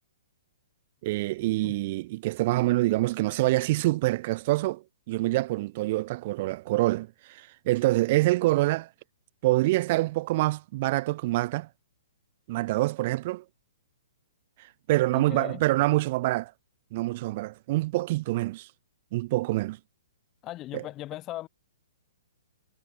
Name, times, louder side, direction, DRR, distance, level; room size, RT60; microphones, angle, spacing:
voice 1, 1.0-8.9 9.4-11.7 12.5-13.4 14.9-16.5 16.9-18.7 19.1-19.8 20.7-20.9, right 19 dB, 45° right, 0.7 m, -26 dB
voice 2, 15.1-15.6 20.4-21.5, left 15 dB, 25° left, 1.5 m, -38 dB
hypercardioid pair, 135°, 0 cm